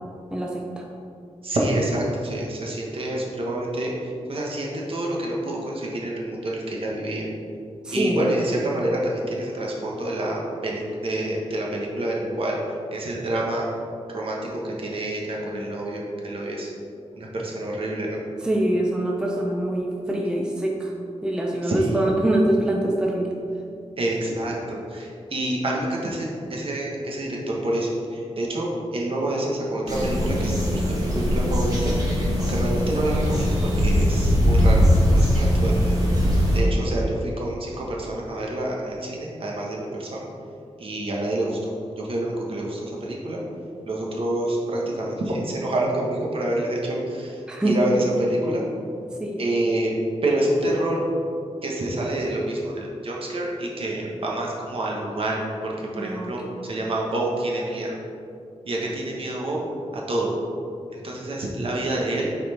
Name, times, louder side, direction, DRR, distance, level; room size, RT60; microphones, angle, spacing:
voice 1, 0.3-0.8 7.8-8.2 18.4-20.9 21.2-23.4 47.5-47.8 49.2-49.4 55.9-56.3, right 1 dB, 5° right, -1 dB, 0.5 m, -24 dB
voice 2, 1.4-3.9 4.3-7.3 7.9-12.6 12.9-13.7 14.1-14.4 14.6-16.7 17.1-18.2 21.6-22.0 24.0-28.7 28.9-31.9 32.4-34.8 35.1-40.3 40.8-41.6 42.0-43.4 43.8-47.4 47.6-48.6 49.4-49.9 50.2-51.0 51.6-57.9 58.7-59.6 59.9-60.3 60.9-62.3, right 1 dB, 55° right, -3 dB, 1.3 m, -27 dB
sound 1, 29.9-36.6, equal, 35° right, 1.4 m, -20 dB
8.5 x 4.3 x 4.3 m, 2.5 s
wide cardioid pair, 165°, 11 cm